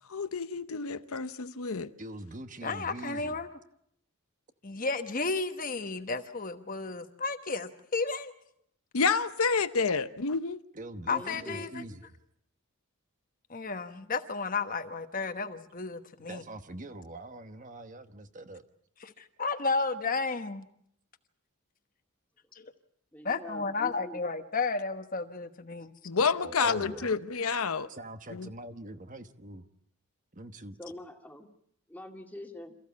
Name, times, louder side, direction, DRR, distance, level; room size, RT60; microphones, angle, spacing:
voice 1, 0.1-1.9 8.9-10.6 26.0-27.9 28.3-28.5, left 5 dB, 75° left, 0.8 m, -29 dB
voice 2, 2.0-3.4 10.7-12.0 16.2-18.6 26.4-27.1 27.9-29.7 30.3-30.8, right 1 dB, 35° right, 1.1 m, -43 dB
voice 3, 2.6-3.5 4.6-8.3 11.1-11.8 13.5-16.4 19.0-20.7 22.5-22.7 23.2-25.9, left 4 dB, 40° left, 1.2 m, -33 dB
voice 4, 11.1-12.1 23.1-24.2 26.6-27.1 30.8-31.5 31.9-32.8, left 1 dB, 5° left, 2.1 m, -44 dB
27.5 x 15.0 x 8.4 m
head